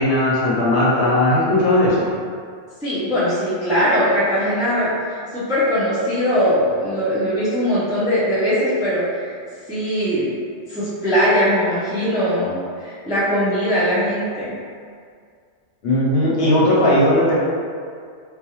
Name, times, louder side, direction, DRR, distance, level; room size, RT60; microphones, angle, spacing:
voice 1, 0.0-2.1 15.8-17.3, left 1 dB, 65° left, -7 dB, 0.9 m, -17 dB
voice 2, 2.8-9.3 9.7-10.3 10.7-14.5, equal, 5° right, -10 dB, 0.3 m, -20 dB
2.3 x 2.2 x 2.9 m, 2.1 s
omnidirectional pair, 1.2 m